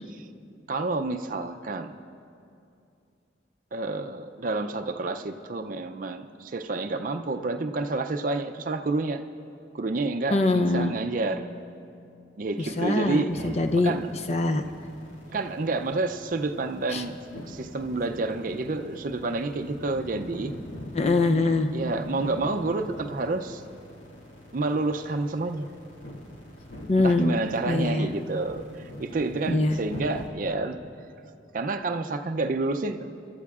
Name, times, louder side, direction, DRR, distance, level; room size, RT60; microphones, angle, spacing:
voice 1, 0.7-2.0 3.7-9.2 9.7-11.4 12.4-13.5 13.8-14.1 15.3-20.5 21.7-23.6 24.5-25.7 27.0-30.8 31.5-33.1, right 3 dB, 45° right, 6 dB, 0.5 m, -29 dB
voice 2, 10.3-10.9 12.6-13.9 14.3-14.7 16.9-17.0 20.9-21.7 26.9-27.4 27.7-28.1 29.5-29.8, left 2 dB, 35° left, 5 dB, 0.5 m, -23 dB
sound 1, 13.3-30.3, left 1 dB, 90° left, 2.1 m, -43 dB
26.0 x 12.5 x 2.4 m, 2.6 s
head